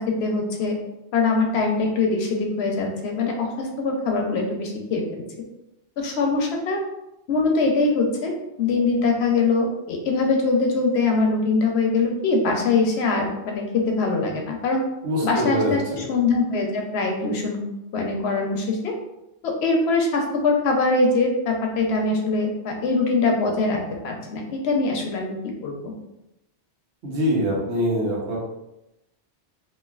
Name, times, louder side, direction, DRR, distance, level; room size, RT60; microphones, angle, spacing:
voice 1, 0.1-0.8 1.1-5.2 6.0-6.8 7.3-8.3 8.6-14.8 15.2-15.8 16.1-17.6 17.9-18.9 19.4-25.3 25.6-25.9, left 3 dB, 75° left, 2 dB, 0.8 m, -22 dB
voice 2, 15.0-16.0 27.0-28.4, equal, 80° right, -3 dB, 1.1 m, -24 dB
3.1 x 2.3 x 2.3 m, 0.90 s
omnidirectional pair, 1.1 m